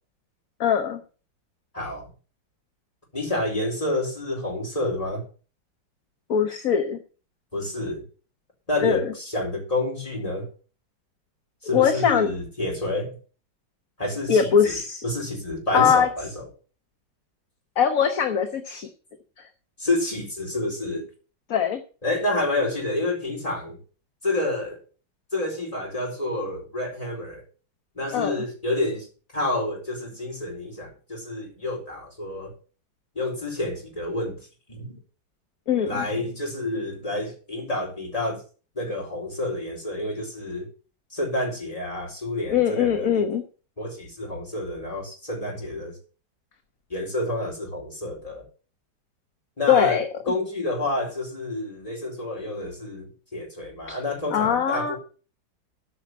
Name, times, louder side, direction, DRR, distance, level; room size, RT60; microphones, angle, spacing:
voice 1, 0.6-1.0 6.3-7.0 8.8-9.1 11.7-12.3 14.3-15.0 15.7-16.1 17.8-18.9 19.4-19.5 21.5-21.8 28.1-28.3 35.7-36.0 42.5-43.4 49.7-50.1 54.3-55.0, left 8 dB, 50° left, 6 dB, 1.3 m, -21 dB
voice 2, 1.7-2.1 3.1-5.2 7.5-8.0 8.7-10.5 11.6-13.1 14.0-14.7 15.0-16.4 19.8-21.0 22.0-23.8 24.2-24.8 25.3-27.4 28.0-29.1 29.3-32.5 33.1-34.4 34.7-35.0 35.8-38.4 38.7-40.7 41.1-43.2 43.8-45.9 46.9-48.4 49.6-55.0, left 2 dB, 20° left, -1 dB, 4.4 m, -29 dB
13.5 x 5.8 x 6.1 m, 0.37 s
omnidirectional pair, 2.1 m